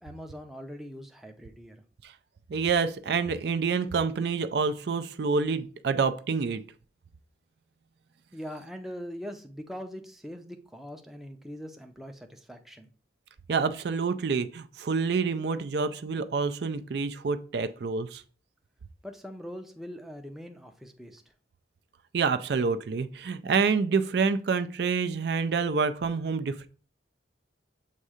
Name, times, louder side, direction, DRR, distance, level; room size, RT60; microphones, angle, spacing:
voice 1, 0.0-1.8 8.3-12.9 19.0-21.2, equal, ahead, 0.5 m, -42 dB
voice 2, 2.5-6.6 13.5-18.2 22.1-26.7, right 5 dB, 60° right, 0.4 m, -27 dB
7.3 x 2.7 x 4.9 m
head